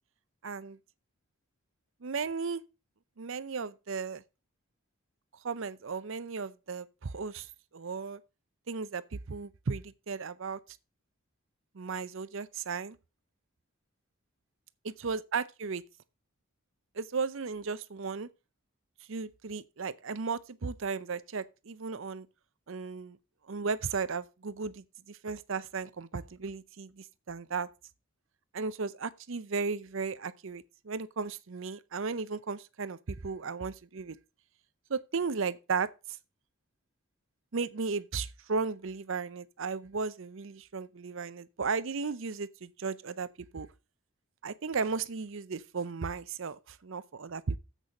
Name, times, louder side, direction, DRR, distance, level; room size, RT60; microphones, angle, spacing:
voice 1, 0.4-0.8 2.0-2.6 3.2-4.2 5.4-7.5 7.7-8.2 8.7-10.6 11.7-13.0 14.8-15.8 17.0-18.3 19.1-22.3 22.7-23.2 23.5-27.7 28.5-34.2 34.9-35.9 37.5-43.7 44.4-47.6, right 4 dB, 60° right, 0.6 m, -35 dB
7.5 x 6.4 x 6.4 m
head